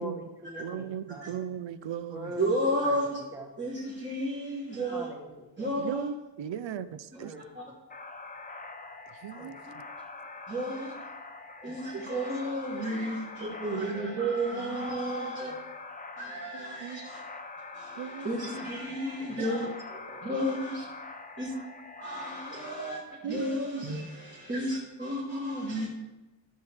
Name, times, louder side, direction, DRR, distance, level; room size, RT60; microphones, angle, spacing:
voice 1, 0.0-1.4 2.1-2.5 2.8-3.0 3.3-3.5 4.9-5.7 7.1-7.4 9.4-9.6 11.6-11.7 13.7-13.9 15.5-15.6 18.6-19.4 19.9-20.3, equal, 5° right, 1 dB, 1.2 m, -43 dB
voice 2, 0.6-2.3 5.8-6.9 7.2-7.3 9.2-9.6 14.1-14.2 16.5-17.1 18.0-18.3 23.2-23.5 23.7-23.8, right 9 dB, 85° right, 14 dB, 0.6 m, -37 dB
voice 3, 2.4-3.2 3.6-5.1 5.6-6.1 10.5-10.9 11.6-15.5 16.2-17.2 17.8-19.7 20.2-20.8 21.4-21.5 22.0-23.0 23.3-25.9, right 1 dB, 25° right, -5 dB, 1.5 m, -32 dB
sound 1, 7.9-22.9, left 3 dB, 20° left, 0.6 m, -44 dB
12.5 x 6.7 x 3.5 m, 1.1 s
wide cardioid pair, 175°, 44 cm